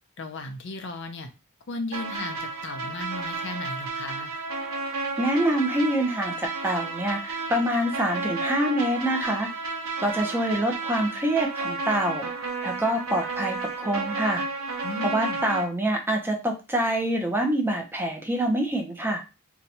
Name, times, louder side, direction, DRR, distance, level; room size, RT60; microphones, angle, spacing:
voice 1, 0.2-1.3 1.7-4.3 14.8-15.4, left 2 dB, 55° left, 6 dB, 0.5 m, -35 dB
sound 1, 1.9-15.6, right 3 dB, 70° right, 0.9 m, -32 dB
voice 2, 5.0-9.5 10.0-12.3 12.6-14.4 15.0-19.2, right 1 dB, 10° right, 2 dB, 0.5 m, -26 dB
2.7 x 2.2 x 4.1 m, 0.29 s
head